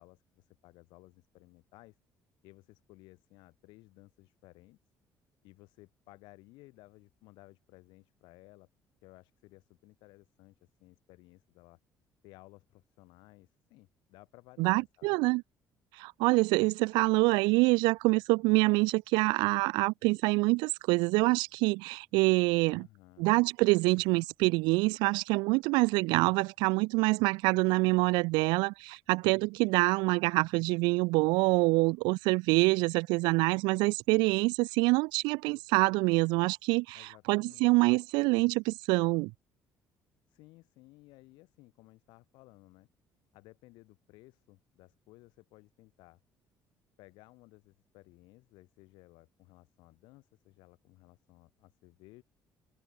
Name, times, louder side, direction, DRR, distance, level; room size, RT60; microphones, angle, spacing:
voice 1, 0.0-2.0 2.4-4.8 5.4-8.7 9.0-11.8 12.2-15.2 22.7-23.3 36.9-37.7 40.3-42.9 43.3-46.2 47.0-52.2, left 21 dB, 85° left, 7.4 m, -57 dB
voice 2, 14.6-15.4 16.0-22.9 23.2-39.3, right 25 dB, 90° right, 0.3 m, -26 dB
supercardioid pair, 85°, 8 cm